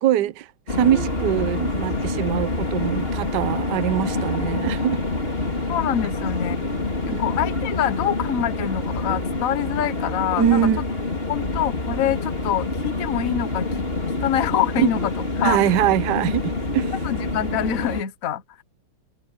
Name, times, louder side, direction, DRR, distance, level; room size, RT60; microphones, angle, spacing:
voice 1, 0.0-5.0 7.1-7.2 10.4-10.8 14.8-14.9 15.4-16.9, right 11 dB, 60° right, 1.3 m, -23 dB
sound 1, 0.7-18.0, left 2 dB, 25° left, 4.0 m, -26 dB
voice 2, 5.7-6.7 7.2-10.7 11.3-13.7 14.2-15.1 15.4-15.6 16.7-18.6, left 10 dB, 50° left, 1.3 m, -25 dB
omnidirectional pair, 2.3 m